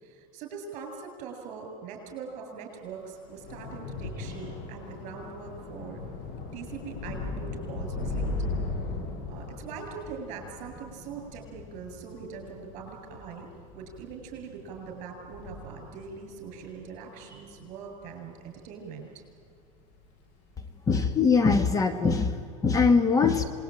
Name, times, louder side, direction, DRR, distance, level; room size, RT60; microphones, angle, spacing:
voice 1, 0.0-6.0 6.5-8.4 9.3-13.5 13.7-19.1, right 6 dB, 50° right, 3 dB, 7.4 m, -42 dB
Thunder / Rain, 2.8-19.4 19.8-20.2 20.5-20.7, left 3 dB, 60° left, 6.0 m, -38 dB
voice 2, 20.9-23.4, left 5 dB, 20° left, 9 dB, 1.3 m, -22 dB
27.0 x 20.5 x 9.1 m, 2.2 s
supercardioid pair, 135°, 16 cm